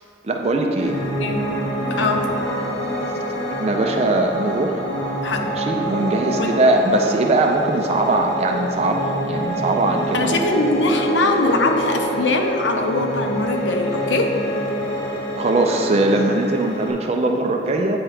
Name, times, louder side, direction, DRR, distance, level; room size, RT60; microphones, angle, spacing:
voice 1, 0.2-1.0 3.6-4.9 5.4-10.3 15.4-18.0, right 2 dB, 35° right, 2 dB, 0.4 m, -20 dB
Piano, 0.8-16.9, equal, 60° left, 1.0 m, -26 dB
voice 2, 2.0-2.3 5.2-5.5 6.3-6.5 10.1-14.3, left 2 dB, 85° left, 4 dB, 0.6 m, -21 dB
8.7 x 3.1 x 4.8 m, 2.5 s
head